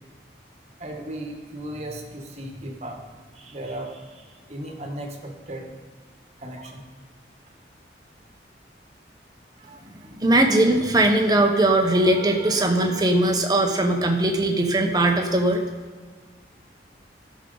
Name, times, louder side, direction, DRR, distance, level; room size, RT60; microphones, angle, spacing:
voice 1, 0.8-3.0 3.3-5.7 6.4-6.8 9.6-9.8, right 1 dB, 40° right, 1 dB, 1.4 m, -36 dB
voice 2, 10.2-15.6, right 1 dB, 20° right, 2 dB, 1.0 m, -20 dB
14.0 x 6.3 x 4.0 m, 1.5 s
head